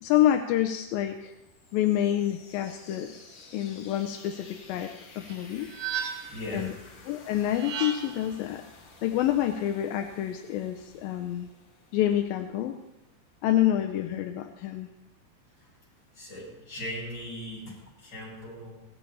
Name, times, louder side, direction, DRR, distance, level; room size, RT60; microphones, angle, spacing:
voice 1, 0.0-1.3 1.7-3.2 3.5-5.7 6.5-6.7 7.1-8.6 9.0-11.5 11.9-12.8 13.4-14.9, left 12 dB, 80° left, 5 dB, 2.3 m, -27 dB
sound 1, 1.3-13.0, left 4 dB, 60° left, 3.3 m, -53 dB
sound 2, 5.3-6.5 7.4-8.3, right 8 dB, 90° right, 4.0 m, -35 dB
voice 2, 6.3-6.7 15.6-15.7 16.1-18.8, left 1 dB, 25° left, -6 dB, 7.6 m, -39 dB
17.0 x 13.0 x 4.2 m, 0.95 s
omnidirectional pair, 4.6 m